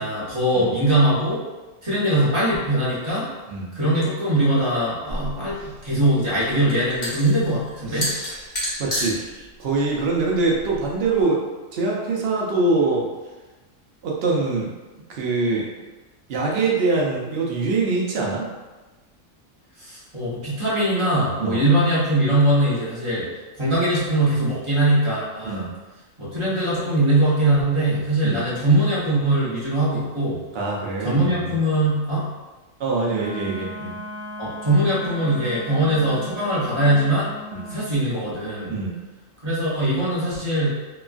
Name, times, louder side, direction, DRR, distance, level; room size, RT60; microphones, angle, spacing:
voice 1, 0.0-1.4 1.8-3.2 3.7-8.1 19.8-23.2 23.6-25.7 26.2-30.4 31.0-32.3 34.4-37.3 37.7-38.8 39.4-40.7, right 1 dB, 25° right, -9 dB, 0.7 m, -21 dB
sound 1, 5.1-11.2, equal, 40° left, 0.8 m, -32 dB
voice 2, 7.9-11.4 11.7-13.1 14.0-14.7 15.1-15.7 16.3-18.5 21.4-21.6 25.4-25.7 28.2-28.4 30.5-31.6 32.8-33.9 37.5-37.7 38.7-38.9, right 3 dB, 60° right, -3 dB, 0.7 m, -24 dB
Wind instrument woodwind instrument, 33.0-37.8, equal, 5° left, 0.3 m, -37 dB
3.0 x 2.3 x 2.4 m, 1.2 s
omnidirectional pair, 1.4 m